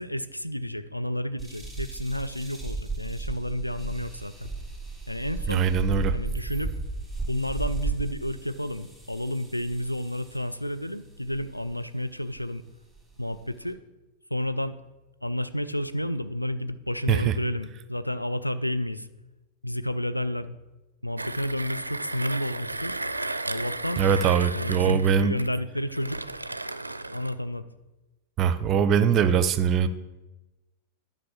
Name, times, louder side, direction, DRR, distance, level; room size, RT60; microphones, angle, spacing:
voice 1, 0.0-4.5 5.1-5.7 6.1-6.7 7.3-12.6 13.2-13.8 14.3-14.8 15.2-19.1 19.6-20.6 21.0-23.0 23.4-24.0 24.5-26.3 27.1-27.6, left 1 dB, 90° left, 11 dB, 0.5 m, -31 dB
sound 1, 1.4-10.6 11.3-11.7 12.4-12.5 12.9-13.7, right 3 dB, 5° left, 2.5 m, -35 dB
voice 2, 5.5-6.2 17.1-17.3 24.0-25.3 28.4-29.9, right 7 dB, 35° right, 14 dB, 0.6 m, -22 dB
Mechanisms, 21.2-27.4, right 2 dB, 85° right, 0.4 m, -34 dB
10.5 x 5.3 x 7.1 m, 1.0 s
figure-of-eight pair, 90°, 0 cm